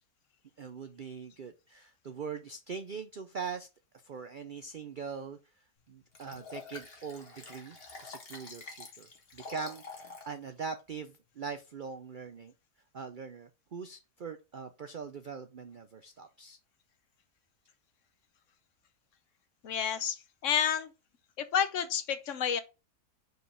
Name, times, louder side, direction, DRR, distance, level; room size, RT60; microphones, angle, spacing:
voice 1, 0.6-3.7 4.0-5.4 5.9-12.5 12.9-16.6, right 5 dB, 75° right, 0.4 m, -42 dB
Liquid, 6.1-10.3 10.8-10.9, left 4 dB, 40° left, 1.6 m, -47 dB
voice 2, 19.6-20.2 20.4-20.9 21.5-22.6, left 8 dB, 60° left, 1.1 m, -29 dB
5.3 x 4.7 x 5.1 m
omnidirectional pair, 1.7 m